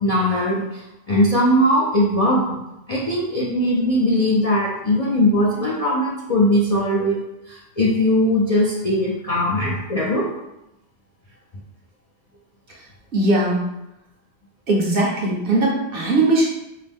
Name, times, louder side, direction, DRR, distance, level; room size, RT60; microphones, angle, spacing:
voice 1, 0.0-2.5 2.9-10.3, left 1 dB, 45° left, -5 dB, 0.5 m, -20 dB
voice 2, 13.1-13.7 14.7-16.5, right 2 dB, 55° right, -2 dB, 0.8 m, -19 dB
4.6 x 2.1 x 3.4 m, 0.90 s
omnidirectional pair, 1.3 m